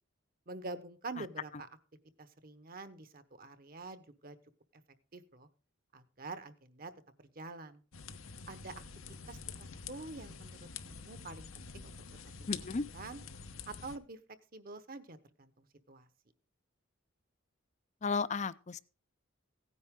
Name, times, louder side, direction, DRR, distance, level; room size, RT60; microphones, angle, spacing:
voice 1, 0.5-1.7 2.2-4.4 5.1-5.5 5.9-6.9 7.2-7.8 8.5-8.7 9.3-11.9 12.9-13.2 13.7-14.2 14.5-16.1, right 3 dB, 45° right, 1.1 m, -46 dB
sound 1, 7.9-14.0, left 6 dB, 80° left, 1.1 m, -47 dB
voice 2, 12.5-12.8 18.0-18.8, left 4 dB, 35° left, 0.5 m, -34 dB
16.5 x 9.6 x 3.7 m
head